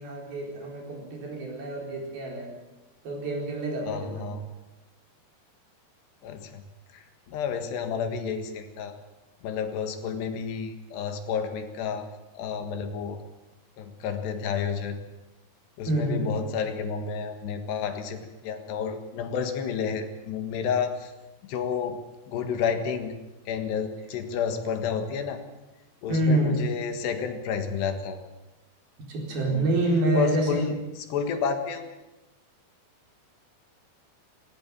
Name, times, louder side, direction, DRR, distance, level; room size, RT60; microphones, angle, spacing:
voice 1, 0.0-2.6 3.0-4.2 15.9-16.4 26.1-26.6 29.1-30.6, right 1 dB, 60° right, 1 dB, 6.0 m, -27 dB
voice 2, 3.9-4.4 6.2-6.6 6.9-9.0 9.4-12.1 12.4-13.2 13.8-15.0 15.8-21.1 21.4-22.0 22.3-23.1 23.5-25.4 26.0-28.2 29.4-29.7 30.1-30.8 31.1-31.9, left 6 dB, 85° left, 7 dB, 3.8 m, -30 dB
18.5 x 17.0 x 8.8 m, 1.0 s
omnidirectional pair, 4.8 m